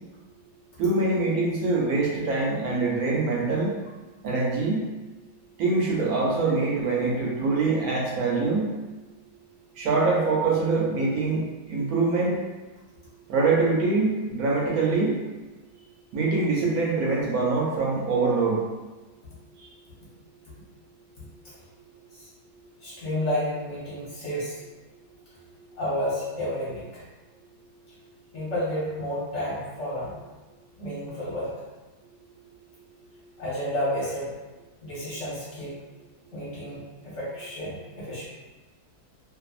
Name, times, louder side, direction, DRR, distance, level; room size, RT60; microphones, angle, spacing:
voice 1, 0.8-3.7 4.2-4.9 5.6-8.7 9.8-12.4 13.3-15.1 16.1-18.6, right 3 dB, 75° right, -4 dB, 1.0 m, -24 dB
voice 2, 22.8-24.6 25.8-27.0 28.3-30.2 30.8-31.5 33.4-34.3 34.8-35.8 36.3-38.3, left 1 dB, 55° left, -8 dB, 1.0 m, -31 dB
2.6 x 2.4 x 2.4 m, 1.2 s
omnidirectional pair, 1.7 m